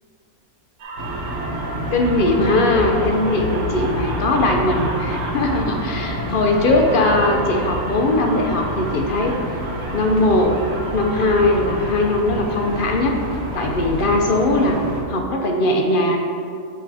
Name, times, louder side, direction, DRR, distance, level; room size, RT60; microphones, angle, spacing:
sound 1, 0.8-12.8, right 2 dB, 75° right, 1.5 m, -33 dB
sound 2, 1.0-15.0, equal, 55° right, 1.2 m, -28 dB
voice 1, 1.9-9.4 9.9-10.6 10.9-14.8 15.1-16.2, left 2 dB, 55° left, 2 dB, 0.6 m, -19 dB
8.0 x 4.5 x 4.8 m, 2.5 s
omnidirectional pair, 1.6 m